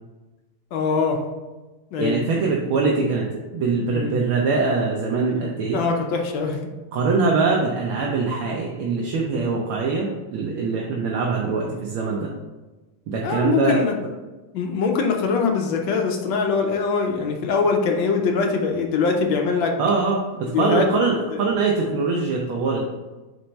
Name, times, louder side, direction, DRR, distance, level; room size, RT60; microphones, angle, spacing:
voice 1, 0.7-1.2 1.9-2.2 3.9-4.2 5.3-5.4 5.7-6.6 13.2-13.9 14.5-19.7 20.5-20.8, left 4 dB, 70° left, 2 dB, 1.4 m, -22 dB
voice 2, 2.0-3.3 3.5-5.8 6.9-12.3 13.1-13.8 19.8-22.8, right 4 dB, 75° right, -2 dB, 1.6 m, -23 dB
4.5 x 4.2 x 5.2 m, 1.2 s
omnidirectional pair, 2.4 m